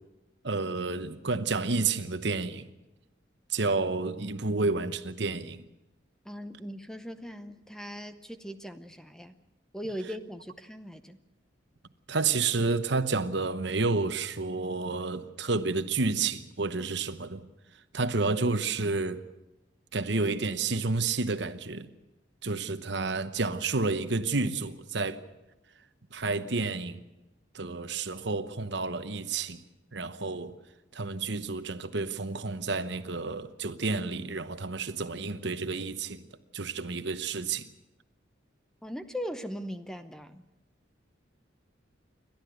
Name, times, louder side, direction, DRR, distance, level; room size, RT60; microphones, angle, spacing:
voice 1, 0.4-2.7 3.5-5.6 12.1-17.4 17.9-19.2 19.9-21.9 22.4-25.2 26.1-27.0 27.5-29.6 29.9-30.5 30.9-36.2 36.5-37.7, right 3 dB, 65° right, 1.0 m, -30 dB
voice 2, 6.2-9.4 9.7-11.2 38.8-40.4, equal, 5° left, 0.7 m, -39 dB
29.0 x 12.0 x 8.0 m
head